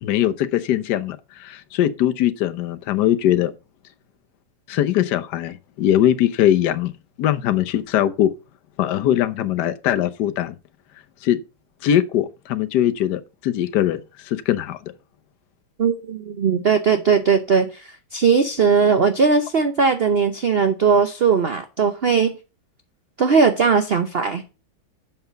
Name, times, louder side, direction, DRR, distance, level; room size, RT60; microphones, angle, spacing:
voice 1, 0.0-3.5 4.7-6.9 7.2-8.3 8.8-10.5 11.2-11.4 11.8-14.0 14.3-14.8, left 11 dB, 65° left, 1.3 m, -21 dB
voice 2, 15.8-22.4 23.2-24.5, right 5 dB, 70° right, 0.5 m, -19 dB
7.8 x 5.7 x 6.6 m
omnidirectional pair, 2.2 m